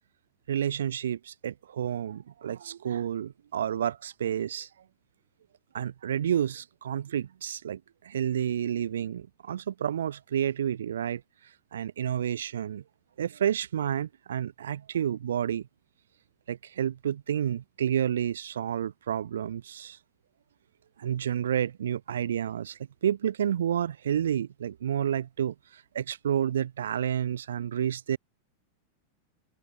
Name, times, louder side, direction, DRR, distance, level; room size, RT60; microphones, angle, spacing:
voice 1, 0.5-4.7 5.7-11.2 11.7-12.8 13.2-15.6 16.5-20.0 21.0-25.5 25.9-28.2, right 9 dB, 65° right, 1.4 m, -30 dB
figure-of-eight pair, 90°, 0 cm